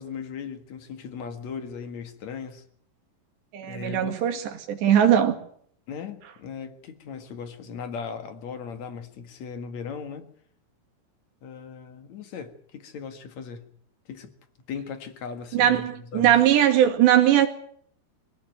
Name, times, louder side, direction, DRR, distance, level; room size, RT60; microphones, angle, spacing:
voice 1, 0.0-2.6 3.6-4.2 5.9-10.3 11.4-13.7 14.1-14.3 14.7-16.4, left 6 dB, 50° left, 2.6 m, -38 dB
voice 2, 3.5-5.4 15.5-17.5, right 10 dB, 85° right, 4.5 m, -20 dB
24.5 x 17.0 x 9.3 m
omnidirectional pair, 4.8 m